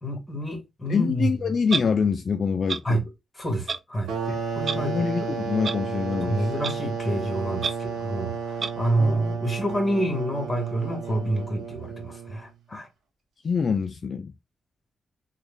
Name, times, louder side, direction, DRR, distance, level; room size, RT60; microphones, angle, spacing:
voice 1, 0.0-1.3 2.8-3.0 3.4-4.1 4.5-5.1 6.2-8.4 8.8-12.9, right 1 dB, 20° left, 1.7 m, -27 dB
voice 2, 0.9-3.0 4.3-4.4 4.7-6.5 9.0-9.2 12.7-12.8 13.4-14.3, left 5 dB, 55° left, 0.3 m, -25 dB
Clock, 1.7-1.8 2.7-2.8 3.7-3.8 4.6-4.8 5.6-5.7 6.6-6.7 7.6-7.7 8.6-8.7, right 5 dB, 60° right, 0.3 m, -27 dB
sound 1, 4.1-12.5, right 5 dB, 80° right, 0.8 m, -32 dB
3.1 x 2.3 x 3.4 m
supercardioid pair, 55°, 0 cm